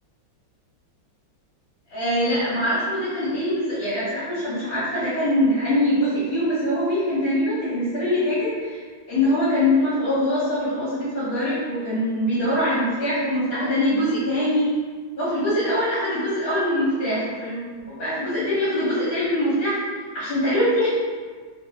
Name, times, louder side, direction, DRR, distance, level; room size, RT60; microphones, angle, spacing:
voice 1, 1.9-8.8 9.1-14.7 15.2-17.6 17.9-19.8 20.1-20.9, left 1 dB, 75° left, -12 dB, 1.9 m, -23 dB
3.7 x 3.6 x 2.8 m, 1.5 s
omnidirectional pair, 2.2 m